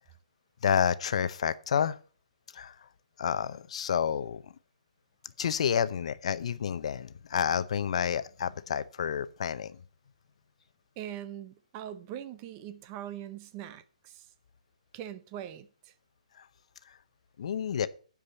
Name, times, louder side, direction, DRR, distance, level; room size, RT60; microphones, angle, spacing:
voice 1, 0.6-2.0 2.5-2.8 3.2-4.4 5.4-9.8 16.4-16.5 17.4-17.9, left 8 dB, 55° left, 0.7 m, -29 dB
voice 2, 11.0-14.3 14.9-15.9, right 11 dB, 25° right, 0.6 m, -42 dB
9.8 x 4.9 x 6.8 m
hypercardioid pair, 145°, 4 cm